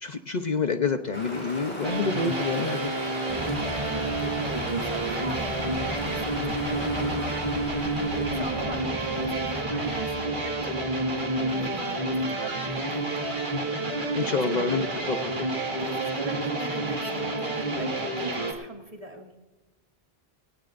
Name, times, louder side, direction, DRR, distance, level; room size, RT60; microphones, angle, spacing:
voice 1, 0.0-2.9 14.1-15.5, left 4 dB, 45° left, 6 dB, 0.9 m, -28 dB
sound 1, 1.1-9.5, equal, 10° left, 4.7 m, -39 dB
sound 2, 1.8-18.5, right 2 dB, 50° right, 2.3 m, -29 dB
sound 3, 3.3-12.7, right 1 dB, 5° right, 5.3 m, -38 dB
voice 2, 3.7-13.5 13.7-14.1 15.8-19.3, right 2 dB, 35° right, 1 dB, 2.5 m, -40 dB
20.5 x 18.0 x 2.6 m, 1.2 s
omnidirectional pair, 1.0 m